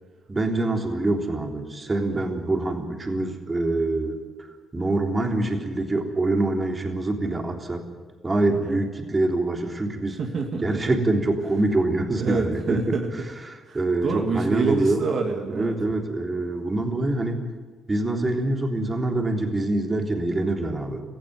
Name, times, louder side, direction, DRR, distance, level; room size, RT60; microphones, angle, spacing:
voice 1, 0.3-4.2 4.7-7.8 8.2-10.2 10.6-12.9 13.5-15.1 15.5-17.4 17.9-21.0, right 2 dB, 25° right, 3 dB, 3.5 m, -25 dB
voice 2, 8.5-8.8 10.2-10.8 12.2-13.3 13.7-15.8, right 4 dB, 55° right, 3 dB, 2.4 m, -27 dB
18.0 x 15.0 x 9.7 m, 1.5 s
cardioid pair, 90°, 0 cm